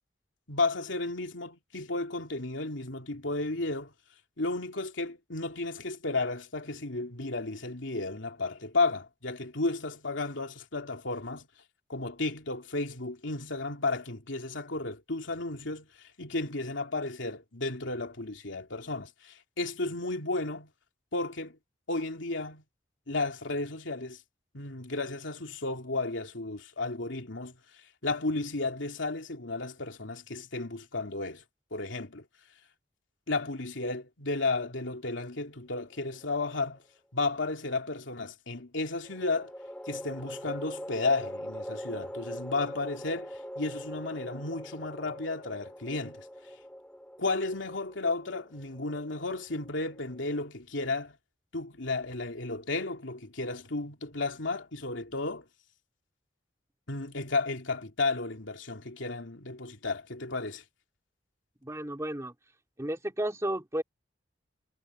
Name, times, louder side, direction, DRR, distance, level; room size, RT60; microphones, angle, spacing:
voice 1, 0.5-3.9 4.4-11.5 11.9-20.7 21.1-21.6 21.9-22.6 23.1-24.2 24.5-27.5 28.0-31.4 31.7-32.3 33.3-36.8 37.1-39.5 39.9-46.3 47.2-51.2 51.5-55.4 56.9-60.6, left 3 dB, 85° left, 2.9 m, -33 dB
sound 1, 36.0-36.8 39.0-50.4, equal, 5° left, 3.2 m, -43 dB
voice 2, 61.6-62.3 62.8-63.8, right 1 dB, 15° right, 2.3 m, -32 dB
head